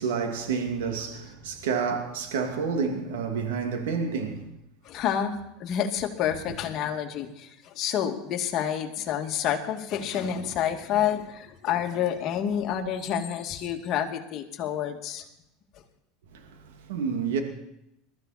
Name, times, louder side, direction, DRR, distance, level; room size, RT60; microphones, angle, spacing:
voice 1, 0.0-4.5 16.3-17.4, right 5 dB, 85° right, 2.5 m, -29 dB
voice 2, 4.8-15.2, left 9 dB, 50° left, 2.2 m, -29 dB
21.5 x 13.5 x 4.4 m
supercardioid pair, 110°, 0 cm